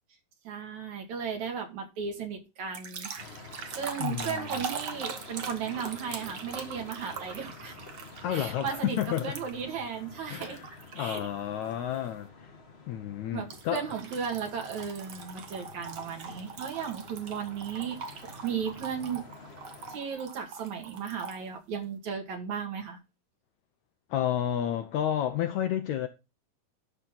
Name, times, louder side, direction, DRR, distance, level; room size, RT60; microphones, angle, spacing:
voice 1, 0.4-3.1 3.7-7.7 8.3-10.6 10.9-11.3 13.3-18.0 18.4-19.2 19.9-23.0, right 7 dB, 60° right, 3.4 m, -35 dB
sound 1, 2.7-9.7 10.3-11.2 11.6-11.9 13.5-21.4, right 6 dB, 80° right, 0.9 m, -42 dB
sound 2, 3.2-19.9, left 4 dB, 50° left, 0.7 m, -49 dB
voice 2, 4.0-4.7 8.2-9.3 10.3-12.5 12.9-13.9 24.1-26.1, left 10 dB, 75° left, 1.8 m, -31 dB
11.5 x 6.8 x 3.9 m
omnidirectional pair, 3.9 m